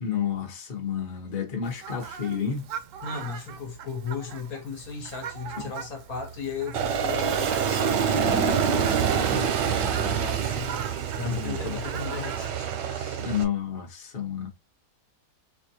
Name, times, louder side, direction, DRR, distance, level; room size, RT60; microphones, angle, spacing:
voice 1, 0.0-2.6 5.6-5.7 11.2-11.8 13.2-14.5, left 8 dB, 35° left, 0.9 m, -30 dB
Fowl, 1.6-12.5, right 8 dB, 70° right, 0.8 m, -41 dB
voice 2, 3.0-13.2, left 5 dB, 60° left, 1.3 m, -36 dB
Aircraft, 6.7-13.4, right 7 dB, 90° right, 1.3 m, -26 dB
4.4 x 2.5 x 2.7 m
omnidirectional pair, 1.8 m